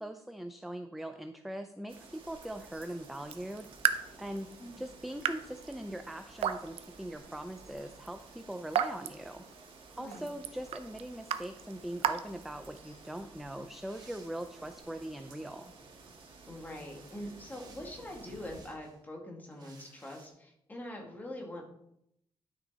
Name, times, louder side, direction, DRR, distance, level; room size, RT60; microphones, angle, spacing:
voice 1, 0.0-4.5 4.8-9.4 10.0-15.7, right 1 dB, ahead, 7 dB, 0.4 m, -41 dB
sound 1, 1.9-18.6, right 3 dB, 60° right, 2.1 m, -54 dB
Raindrop / Drip, 3.2-13.1, right 9 dB, 80° right, 0.6 m, -37 dB
voice 2, 9.9-10.3 16.5-21.6, left 1 dB, 15° left, 0 dB, 1.9 m, -44 dB
sound 2, 13.9-14.8 15.6-16.1 16.6-19.0 19.5-20.3, right 4 dB, 45° right, 1.8 m, -60 dB
11.0 x 6.4 x 4.1 m, 0.76 s
wide cardioid pair, 175°, 10 cm